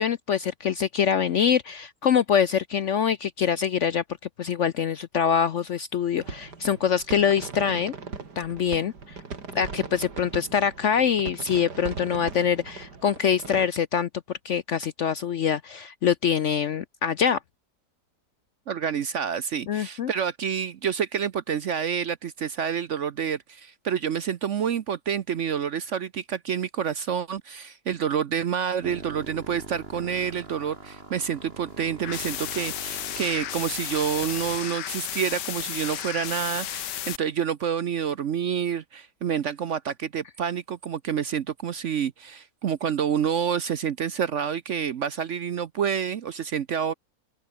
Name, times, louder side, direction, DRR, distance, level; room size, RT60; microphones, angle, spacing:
voice 1, 0.0-4.0 4.4-7.9 8.4-9.2 9.5-14.1 14.4-17.4 19.7-20.1, left 8 dB, 60° left, 0.8 m, -24 dB
sound 1, 6.2-13.7, right 4 dB, 70° right, 3.5 m, -39 dB
voice 2, 18.7-46.9, right 8 dB, 55° right, 0.9 m, -28 dB
sound 2, 28.8-34.6, right 3 dB, 35° right, 2.8 m, -43 dB
sound 3, 32.0-37.2, left 11 dB, 80° left, 1.6 m, -33 dB
omnidirectional pair, 1.8 m